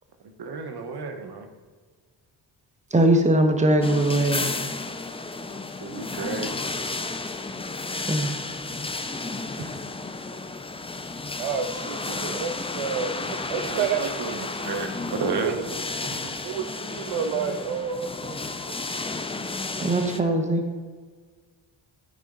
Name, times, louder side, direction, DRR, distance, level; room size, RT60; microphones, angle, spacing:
voice 1, 0.4-1.5 5.8-6.6 9.5-9.7 13.1-13.3 13.7-15.6 16.1-16.4, right 4 dB, 55° right, 5 dB, 1.2 m, -32 dB
voice 2, 2.9-4.5 8.1-8.3 19.8-20.6, right 1 dB, 15° right, 4 dB, 1.1 m, -20 dB
sound 1, 3.8-20.2, left 3 dB, 10° left, 0.5 m, -32 dB
voice 3, 11.4-14.1 15.4-15.5 16.4-16.6 16.9-18.4 18.7-19.0, right 7 dB, 85° right, 8 dB, 0.8 m, -30 dB
12.5 x 5.0 x 3.9 m, 1.6 s
cardioid pair, 90°, 47 cm